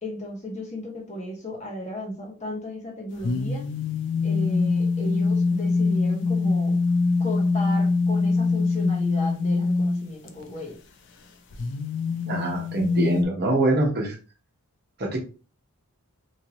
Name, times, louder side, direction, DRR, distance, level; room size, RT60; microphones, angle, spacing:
voice 1, 0.0-3.6 4.2-6.7 7.2-10.8, left 1 dB, 35° left, 0 dB, 0.9 m, -35 dB
sound 1, 3.2-10.6 11.5-13.2, left 4 dB, 55° left, 0.5 m, -24 dB
voice 2, 12.3-14.2 15.0-15.2, right 2 dB, 50° right, 0 dB, 0.9 m, -24 dB
3.1 x 2.7 x 2.8 m, 0.34 s
head